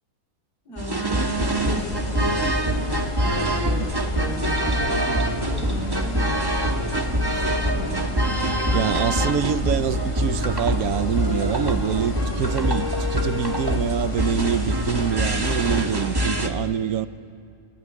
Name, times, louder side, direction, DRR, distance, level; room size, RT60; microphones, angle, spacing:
voice 1, 0.7-8.3, right 1 dB, 80° left, 5.5 m, -36 dB
sound 1, 0.8-16.5, right 1 dB, 15° right, 1.4 m, -25 dB
sound 2, 1.3-15.8, left 3 dB, 30° left, 0.7 m, -34 dB
voice 2, 8.7-17.1, right 9 dB, 70° right, 1.2 m, -25 dB
28.5 x 15.0 x 9.6 m
omnidirectional pair, 1.6 m